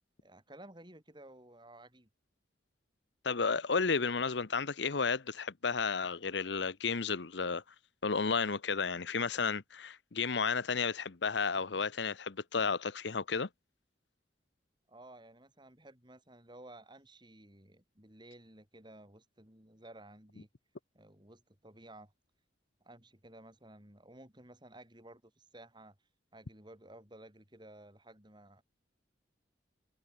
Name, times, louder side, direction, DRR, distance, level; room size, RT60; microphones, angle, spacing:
voice 1, 0.2-2.1 14.9-20.5 20.9-22.1 22.8-28.6, right 1 dB, 25° right, 4.9 m, -55 dB
voice 2, 3.2-7.6 8.0-13.5, left 5 dB, 65° left, 0.9 m, -32 dB
head